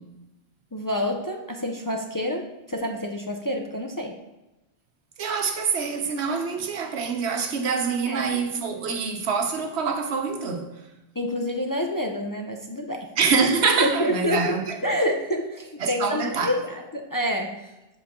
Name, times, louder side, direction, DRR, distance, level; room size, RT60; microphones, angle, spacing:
voice 1, 0.7-4.1 8.1-8.3 11.2-13.1 13.8-14.6 14.8-17.6, equal, 25° left, 0.5 m, -28 dB
voice 2, 5.2-10.7 13.2-14.8 15.8-16.6, right 5 dB, 90° right, 1.1 m, -25 dB
7.3 x 5.1 x 3.6 m
omnidirectional pair, 1.1 m